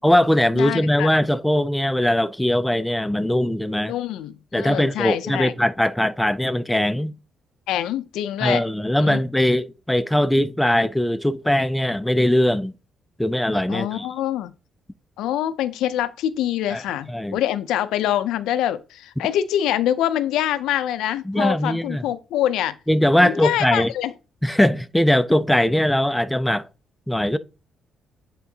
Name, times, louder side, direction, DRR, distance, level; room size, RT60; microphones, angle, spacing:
voice 1, 0.0-3.9 4.5-7.1 8.4-12.7 13.2-14.1 16.7-16.8 17.1-17.4 21.3-22.0 22.9-23.9 24.4-26.7 27.1-27.4, left 1 dB, 5° left, 0.4 m, -20 dB
voice 2, 0.5-1.1 3.9-5.5 7.7-8.6 9.0-9.2 13.7-14.5 15.2-22.8 23.2-24.1, left 11 dB, 90° left, 0.4 m, -25 dB
9.2 x 3.7 x 2.8 m
cardioid pair, 90°, 0 cm